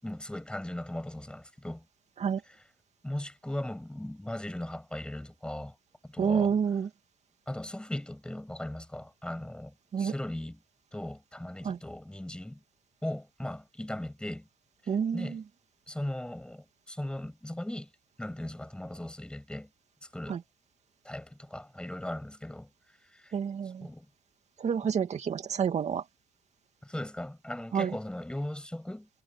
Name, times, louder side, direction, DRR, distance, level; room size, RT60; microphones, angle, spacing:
voice 1, 0.0-1.8 2.5-2.6 3.0-5.8 6.0-6.6 7.5-10.6 10.9-12.6 13.0-14.5 14.8-15.4 15.9-17.9 18.2-19.7 20.1-20.4 21.0-23.3 23.6-24.1 26.8-29.1, left 1 dB, 5° left, 7.3 m, -38 dB
voice 2, 6.2-6.9 9.9-10.1 11.6-11.8 14.9-15.4 20.3-20.4 23.3-23.9 24.6-26.0 27.7-27.9, right 7 dB, 40° right, 2.5 m, -28 dB
cardioid pair, 110°, 17 cm